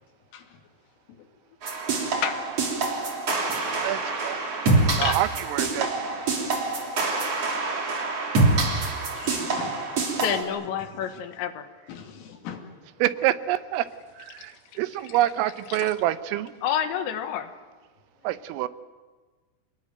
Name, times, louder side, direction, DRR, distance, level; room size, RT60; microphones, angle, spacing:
voice 1, 1.1-1.6 3.4-4.0 6.9-8.4 8.7-10.2 10.6-11.2 11.9-12.6 12.9-13.0, left 7 dB, 90° left, 5.3 m, -45 dB
sound 1, 1.6-10.4, right 3 dB, 35° right, 3.5 m, -26 dB
voice 2, 3.8-4.4 5.0-6.1 13.0-13.9 14.3-14.5 14.8-16.5 18.3-18.7, right 14 dB, 90° right, 3.6 m, -26 dB
voice 3, 10.2-11.7 14.4-14.6 14.9-15.2 15.7-15.9 16.6-17.5, left 9 dB, 70° left, 3.5 m, -29 dB
27.0 x 20.0 x 9.2 m
omnidirectional pair, 5.7 m